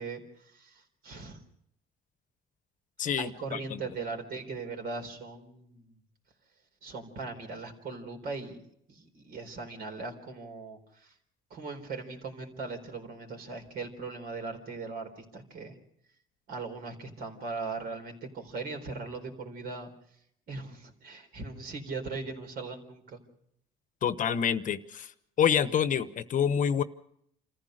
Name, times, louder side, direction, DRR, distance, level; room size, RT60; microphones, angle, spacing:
voice 1, 0.0-1.4 3.2-6.0 6.8-8.6 8.9-11.1 11.5-15.8 16.5-19.9 20.5-23.2, right 4 dB, 65° right, 5 dB, 4.1 m, -39 dB
voice 2, 3.0-3.8 24.0-25.1 25.4-26.8, left 8 dB, 50° left, 13 dB, 1.0 m, -27 dB
27.5 x 14.5 x 6.5 m, 0.70 s
cardioid pair, 110°, 17 cm